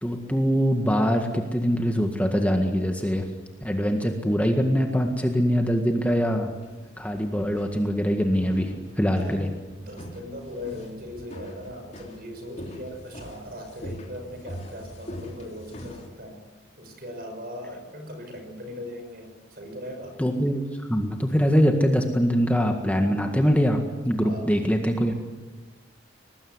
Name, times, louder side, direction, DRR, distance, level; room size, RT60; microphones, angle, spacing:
voice 1, 0.0-3.3 3.6-6.5 7.0-9.5 20.2-20.6 20.9-25.1, equal, 10° left, 3 dB, 1.8 m, -23 dB
sound 1, 6.5-16.1, equal, 35° left, 3.4 m, -42 dB
voice 2, 9.2-16.4 16.8-20.2 24.2-24.5, left 1 dB, 50° right, 4 dB, 6.1 m, -39 dB
23.0 x 19.5 x 9.7 m, 1.2 s
head